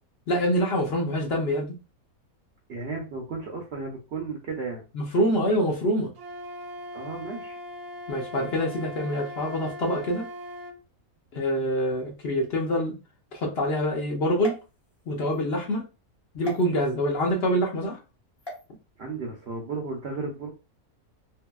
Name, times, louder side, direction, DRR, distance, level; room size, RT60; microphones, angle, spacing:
voice 1, 0.3-1.8 4.9-6.1 8.1-10.2 11.3-13.0 13.3-14.6 15.1-15.8 16.3-18.0, equal, 55° left, 0 dB, 0.8 m, -25 dB
voice 2, 2.7-4.8 6.9-7.6 19.0-20.5, right 4 dB, 60° right, 1 dB, 0.7 m, -34 dB
Wind instrument woodwind instrument, 6.2-10.8, left 1 dB, 85° right, 1.1 m, -40 dB
sound 1, 14.4-15.4 16.4-16.6 18.4-18.6, equal, 25° left, 0.7 m, -40 dB
2.9 x 2.7 x 2.2 m, 0.30 s
omnidirectional pair, 1.6 m